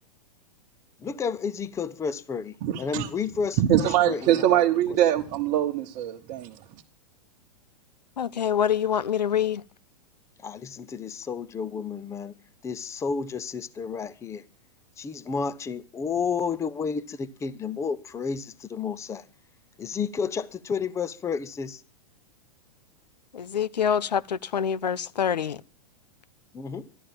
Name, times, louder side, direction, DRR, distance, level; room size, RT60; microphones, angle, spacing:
voice 1, 1.0-4.6 10.4-12.3 12.6-14.4 15.0-19.2 19.8-21.8 26.5-26.9, left 6 dB, 15° left, 0.7 m, -31 dB
voice 2, 2.6-3.1 3.6-6.5, right 11 dB, 45° right, 1.2 m, -23 dB
voice 3, 8.2-9.6 23.3-25.6, left 8 dB, 85° left, 0.7 m, -26 dB
13.5 x 12.0 x 7.3 m
hypercardioid pair, 105°, 21 cm